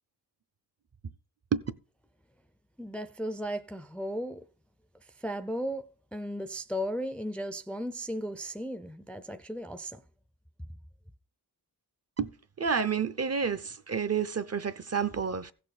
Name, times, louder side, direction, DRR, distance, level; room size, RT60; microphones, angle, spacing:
voice 1, 2.8-4.4 5.2-10.0, equal, 5° left, 0.5 m, -35 dB
voice 2, 12.6-15.5, right 6 dB, 40° right, 0.6 m, -29 dB
16.0 x 6.8 x 4.1 m
wide cardioid pair, 170°, 41 cm